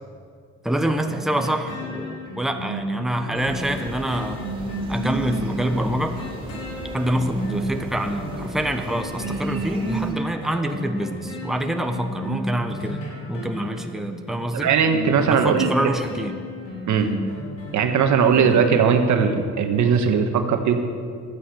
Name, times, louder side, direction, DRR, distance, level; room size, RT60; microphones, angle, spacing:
voice 1, 0.6-4.4 4.9-6.2 6.9-14.7 15.3-16.4, right 1 dB, ahead, 5 dB, 1.1 m, -26 dB
sound 1, 0.8-19.5 19.9-20.0, equal, 85° left, 4.4 m, -33 dB
sound 2, 3.4-10.1, right 2 dB, 15° right, 3.3 m, -37 dB
voice 2, 14.5-15.8 16.9-17.1 17.7-20.8, right 6 dB, 75° right, 6 dB, 1.5 m, -19 dB
12.5 x 9.7 x 8.4 m, 2.1 s
cardioid pair, 90°, 30 cm